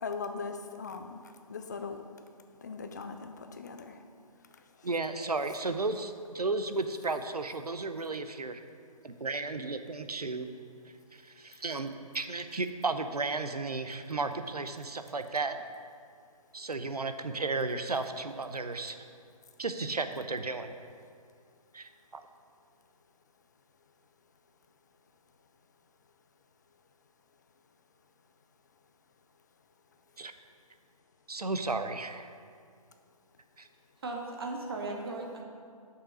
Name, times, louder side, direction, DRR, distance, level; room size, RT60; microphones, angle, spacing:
voice 1, 0.0-2.0 2.6-4.0, left 4 dB, 30° left, 6 dB, 0.4 m, -39 dB
voice 2, 4.8-8.6 9.0-10.5 11.1-15.6 16.5-19.0 19.6-20.7 21.7-22.2 30.2-30.3 31.3-32.3 33.6-33.7, right 3 dB, 80° right, 9 dB, 0.7 m, -34 dB
voice 3, 34.0-35.4, right 2 dB, 40° right, 1 dB, 0.9 m, -37 dB
6.7 x 5.5 x 6.1 m, 2.2 s
figure-of-eight pair, 145°, 19 cm